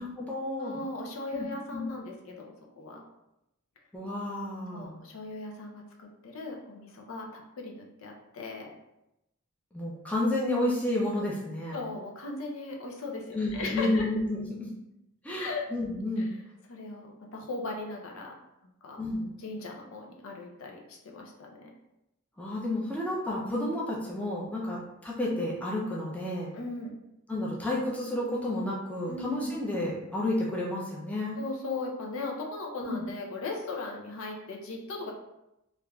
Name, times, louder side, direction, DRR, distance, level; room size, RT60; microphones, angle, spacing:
voice 1, 0.0-0.8 1.3-1.9 3.9-5.0 9.7-11.7 13.3-14.7 15.2-16.3 19.0-19.3 22.4-26.5 27.3-31.4 32.8-33.1, left 1 dB, 5° left, -5 dB, 0.4 m, -31 dB
voice 2, 0.6-3.0 4.7-8.7 11.7-14.1 15.4-15.7 16.2-16.3 16.7-18.3 18.8-19.0 19.4-21.7 24.7-24.8 26.5-26.9 29.1-29.5 31.4-35.1, left 3 dB, 75° left, 0 dB, 0.5 m, -38 dB
3.2 x 2.4 x 2.2 m, 0.89 s
head